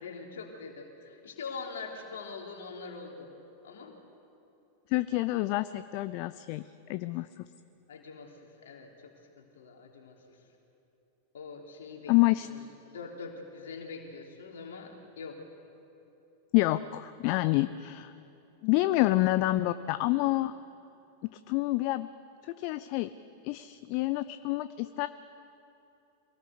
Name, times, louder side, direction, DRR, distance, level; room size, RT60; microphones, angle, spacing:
voice 1, 0.0-3.3 3.6-4.0 7.9-10.4 11.3-15.4, left 4 dB, 60° left, 0 dB, 3.5 m, -44 dB
voice 2, 4.9-7.5 12.1-12.5 16.5-18.1 18.6-20.5 21.3-22.1 22.4-23.1 23.4-25.1, left 18 dB, 45° left, 14 dB, 0.5 m, -28 dB
24.0 x 18.0 x 6.7 m, 2.9 s
figure-of-eight pair, 90°, 0 cm